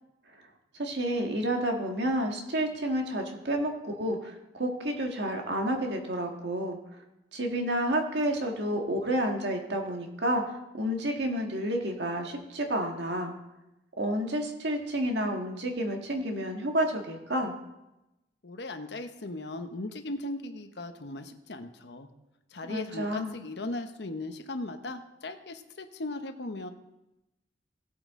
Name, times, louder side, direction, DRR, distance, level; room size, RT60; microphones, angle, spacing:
voice 1, 0.8-6.8 7.3-13.3 14.0-17.5 22.7-23.3, right 1 dB, 70° right, 2 dB, 1.8 m, -30 dB
voice 2, 18.4-22.1 22.5-26.7, left 2 dB, 65° left, 7 dB, 1.0 m, -38 dB
16.0 x 8.6 x 3.7 m, 0.94 s
head